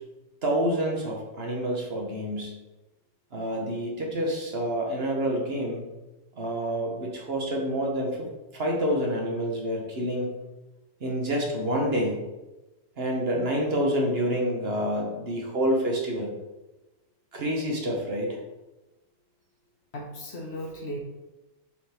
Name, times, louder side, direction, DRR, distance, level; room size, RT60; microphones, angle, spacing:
voice 1, 0.4-2.5 3.3-5.8 6.3-8.3 8.5-10.3 11.0-12.3 13.0-16.3 17.3-18.4, equal, 40° right, 0 dB, 1.0 m, -28 dB
voice 2, 19.9-21.0, equal, 50° left, 1 dB, 0.8 m, -36 dB
6.5 x 3.8 x 4.3 m, 1.1 s
omnidirectional pair, 2.1 m